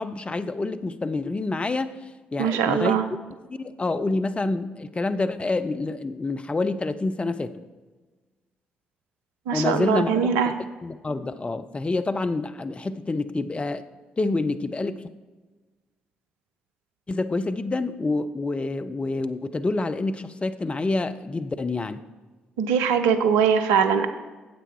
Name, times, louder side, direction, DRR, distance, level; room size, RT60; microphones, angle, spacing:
voice 1, 0.0-3.0 3.5-7.6 9.5-10.3 10.6-13.8 14.2-15.1 17.1-22.0, left 3 dB, 25° left, 10 dB, 0.6 m, -27 dB
voice 2, 2.4-3.0 9.5-10.5 22.6-24.1, right 7 dB, 70° right, 8 dB, 0.6 m, -21 dB
9.2 x 8.1 x 4.6 m, 1.3 s
figure-of-eight pair, 40°, 5 cm